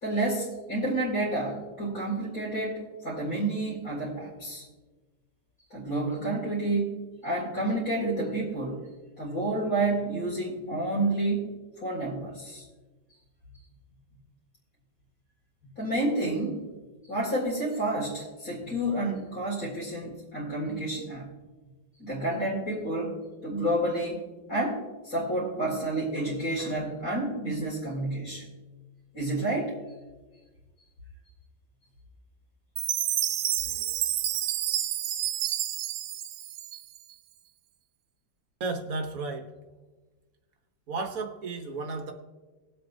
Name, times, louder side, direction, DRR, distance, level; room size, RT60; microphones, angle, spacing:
voice 1, 0.0-4.6 5.7-8.9 9.2-12.6 15.8-16.7 17.1-21.3 22.0-23.2 23.4-28.5 29.1-29.7 33.6-33.8, right 2 dB, 55° left, -7 dB, 2.9 m, -30 dB
Chime, 32.8-37.1, right 12 dB, 75° right, 0.8 m, -29 dB
voice 2, 38.6-39.4 40.9-42.1, right 3 dB, 55° right, 5 dB, 1.3 m, -33 dB
20.0 x 7.8 x 2.7 m, 1.3 s
omnidirectional pair, 2.0 m